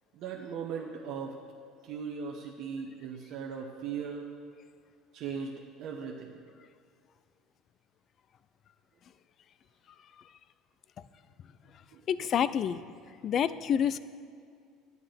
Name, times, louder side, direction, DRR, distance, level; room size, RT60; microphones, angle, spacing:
voice 1, 0.1-1.4 1.8-4.3 5.1-6.4 11.9-12.0, right 6 dB, 55° right, 0 dB, 1.0 m, -38 dB
voice 2, 12.1-12.8 13.2-14.0, left 8 dB, 40° left, 16 dB, 0.4 m, -27 dB
11.5 x 9.5 x 5.1 m, 2.3 s
cardioid pair, 135°, 0 cm